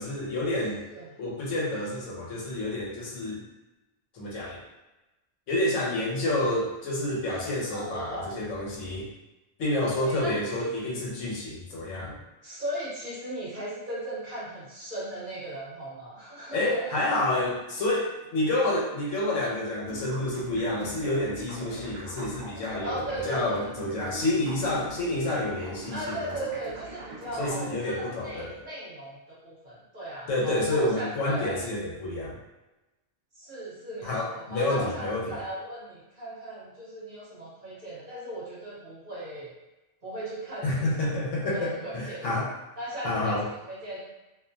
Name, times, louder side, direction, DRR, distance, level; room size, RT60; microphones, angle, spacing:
voice 1, 0.0-0.8 1.2-3.4 4.1-4.6 5.5-9.1 9.6-12.2 16.5-26.3 27.4-28.6 30.3-32.4 34.0-35.4 40.6-42.5 43.0-43.5, left 1 dB, 80° left, -3 dB, 1.0 m, -29 dB
voice 2, 7.6-8.4 9.7-11.0 12.4-17.1 22.8-23.7 25.9-31.6 33.3-39.5 40.0-40.9 41.5-42.2 42.8-43.4 43.6-44.0, right 1 dB, 45° right, -8 dB, 0.9 m, -37 dB
sound 1, 19.8-27.5, right 2 dB, 75° right, 0.9 m, -42 dB
2.5 x 2.1 x 2.5 m, 1.0 s
omnidirectional pair, 1.3 m